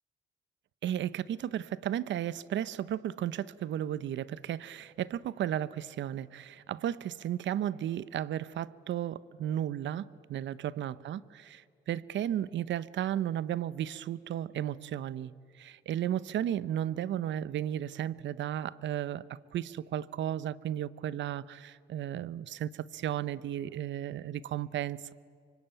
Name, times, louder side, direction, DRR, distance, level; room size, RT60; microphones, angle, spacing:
voice 1, 0.8-25.1, right 11 dB, 70° right, 18 dB, 0.8 m, -34 dB
25.0 x 24.5 x 9.1 m, 2.3 s
cardioid pair, 90°, 20 cm